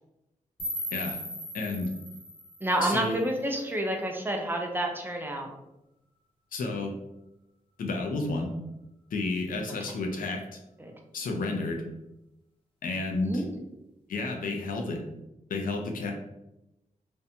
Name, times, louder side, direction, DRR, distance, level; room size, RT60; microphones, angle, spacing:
sound 1, 0.6-3.6, equal, 40° left, 0.8 m, -38 dB
voice 1, 1.5-1.9 2.8-3.2 6.5-6.9 7.8-8.5 9.1-10.6 11.1-11.8 12.8-13.4 14.1-15.0 15.5-16.1, left 3 dB, 85° left, 2 dB, 0.5 m, -31 dB
voice 2, 2.6-5.5 10.8-10.9 13.2-13.5, right 1 dB, 15° right, 1 dB, 0.4 m, -29 dB
2.6 x 2.2 x 2.8 m, 0.90 s
wide cardioid pair, 120°, 14 cm